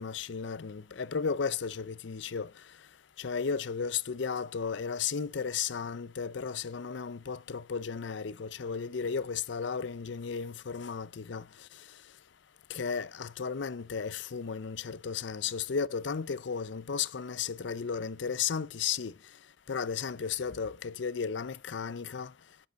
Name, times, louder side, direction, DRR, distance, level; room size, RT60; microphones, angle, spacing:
voice 1, 0.0-2.5 3.2-11.4 12.7-19.1 19.7-22.3, left 6 dB, 65° left, 0.5 m, -34 dB
10.5 x 7.7 x 6.2 m
head